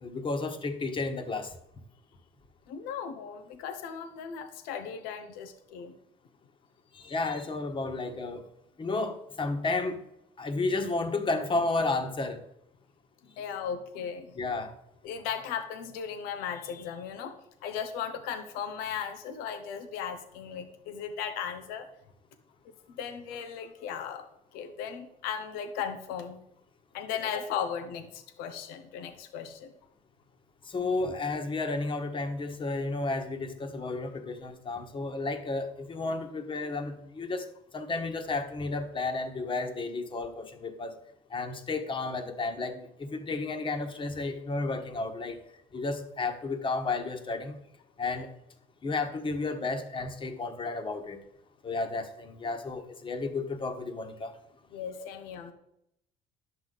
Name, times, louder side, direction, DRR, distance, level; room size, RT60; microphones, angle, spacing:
voice 1, 0.0-1.5 6.9-8.4 8.8-10.0 10.4-12.4 14.3-14.7 30.7-37.4 37.7-41.0 41.3-45.4 45.7-47.6 48.0-48.3 48.8-51.2 51.6-54.3, left 3 dB, 35° left, 6 dB, 1.4 m, -32 dB
voice 2, 2.7-5.9 13.4-14.3 15.0-17.3 17.6-21.9 22.9-24.2 24.5-26.4 26.9-29.7 54.7-55.5, left 7 dB, 90° left, 8 dB, 0.9 m, -36 dB
10.5 x 7.8 x 4.0 m, 0.79 s
cardioid pair, 90°, 15 cm